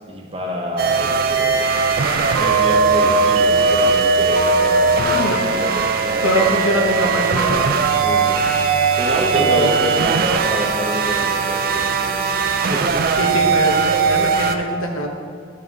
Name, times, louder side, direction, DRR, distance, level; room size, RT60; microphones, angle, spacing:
voice 1, 0.1-1.7 2.3-6.5 8.0-13.1, equal, 25° right, 0 dB, 0.9 m, -27 dB
sound 1, 0.8-14.5, right 4 dB, 45° right, 0.4 m, -19 dB
sound 2, 1.4-10.4, right 7 dB, 80° right, 0.7 m, -26 dB
voice 2, 5.1-5.5 6.2-7.8 9.3-9.8 13.2-15.1, equal, 80° left, 2 dB, 1.1 m, -22 dB
10.5 x 5.5 x 3.7 m, 2.1 s
head